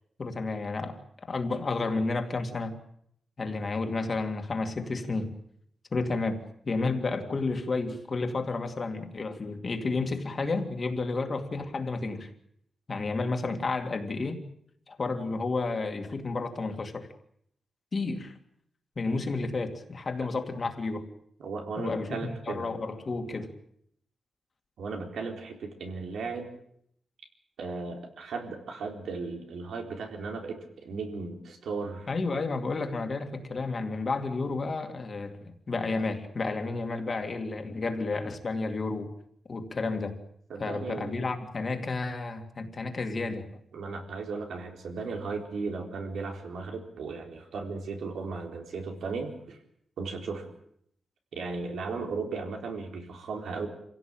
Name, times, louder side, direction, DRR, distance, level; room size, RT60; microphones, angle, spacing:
voice 1, 0.2-2.8 3.4-5.3 5.9-12.3 12.9-14.4 14.9-17.1 17.9-18.3 19.0-21.1 21.8-23.5 32.1-39.1 39.5-40.2 40.6-43.5, left 3 dB, 35° left, 6 dB, 2.4 m, -31 dB
voice 2, 21.4-22.7 24.8-26.5 27.6-32.1 40.5-41.2 43.7-49.6 50.0-50.5 51.3-53.7, right 4 dB, 90° right, 3 dB, 4.3 m, -36 dB
26.5 x 16.5 x 9.0 m, 0.70 s
wide cardioid pair, 165°, 0 cm